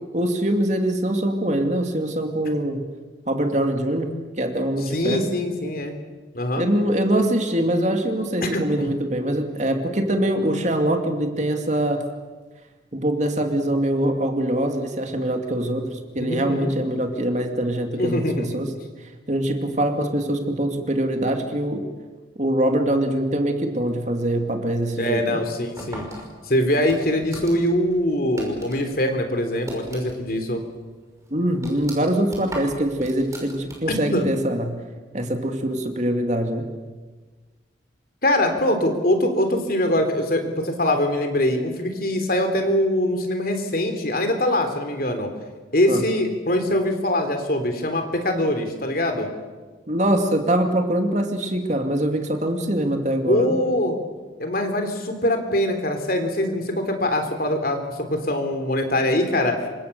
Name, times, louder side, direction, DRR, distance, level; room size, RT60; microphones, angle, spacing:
voice 1, 0.1-2.8 3.3-4.1 4.4-5.3 6.6-12.0 12.9-18.7 19.3-21.9 22.4-25.4 31.3-34.8 35.1-36.7 45.9-46.0 49.9-53.6, right 1 dB, 40° right, 4 dB, 2.6 m, -23 dB
voice 2, 4.8-6.0 6.3-6.7 8.4-8.9 16.2-16.8 18.0-18.5 25.0-26.1 26.5-30.6 33.9-34.3 38.2-45.3 45.7-49.3 53.3-54.0 54.4-57.8 58.1-59.6, left 1 dB, 50° left, 6 dB, 3.5 m, -23 dB
sound 1, 25.8-28.9 29.2-30.4 30.7-30.8 31.2-34.1, right 1 dB, 15° right, 5.6 m, -38 dB
28.0 x 25.0 x 6.9 m, 1.4 s
head